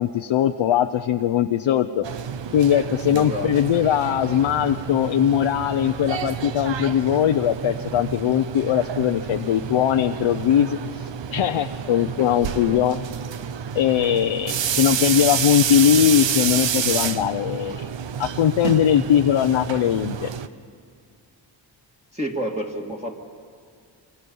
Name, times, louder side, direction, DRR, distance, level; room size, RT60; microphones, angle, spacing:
voice 1, 0.0-2.0 2.5-10.8 11.3-13.0 13.7-17.9 18.2-20.3, left 10 dB, 75° left, 6 dB, 0.7 m, -20 dB
sound 1, 2.0-20.5, right 8 dB, 65° right, 0.9 m, -29 dB
voice 2, 3.1-3.7 12.6-12.9 14.2-14.6 22.1-23.1, equal, 15° right, -1 dB, 2.1 m, -31 dB
27.0 x 24.5 x 5.5 m, 2.2 s
cardioid pair, 70°, 47 cm